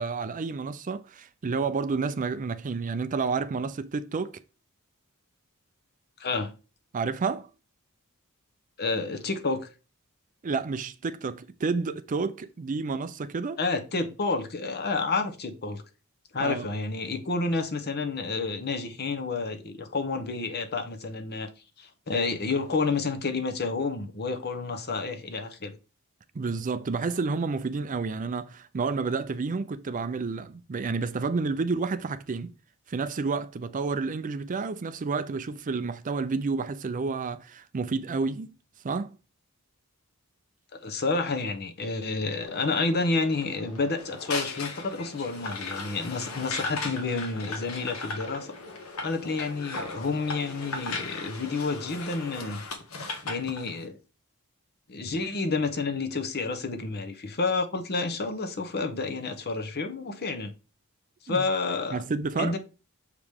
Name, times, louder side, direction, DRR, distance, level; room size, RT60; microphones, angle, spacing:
voice 1, 0.0-4.4 6.9-7.5 10.4-13.6 16.4-16.7 26.3-32.5 32.9-38.6 38.8-39.1 61.3-61.4 61.9-62.6, right 4 dB, 35° right, 0.4 m, -30 dB
voice 2, 6.2-6.5 8.8-9.7 13.6-15.8 16.3-21.5 21.8-25.7 40.7-48.5 49.0-52.6 53.2-54.0 54.9-60.5 61.2-62.0 62.4-62.6, left 3 dB, 45° left, 0.9 m, -30 dB
sound 1, 42.4-52.4, left 3 dB, 90° left, 1.7 m, -45 dB
sound 2, 44.0-53.8, left 3 dB, 70° left, 1.2 m, -37 dB
6.7 x 4.9 x 3.5 m
head